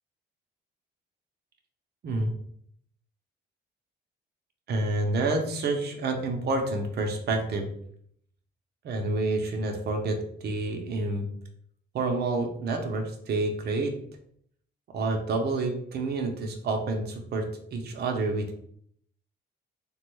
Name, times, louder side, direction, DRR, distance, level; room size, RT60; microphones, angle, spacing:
voice 1, 4.7-7.7 8.8-11.3 11.9-13.9 14.9-17.4 17.7-18.5, right 2 dB, 55° right, 3 dB, 0.6 m, -28 dB
3.3 x 2.2 x 3.1 m, 0.67 s
cardioid pair, 90°, 20 cm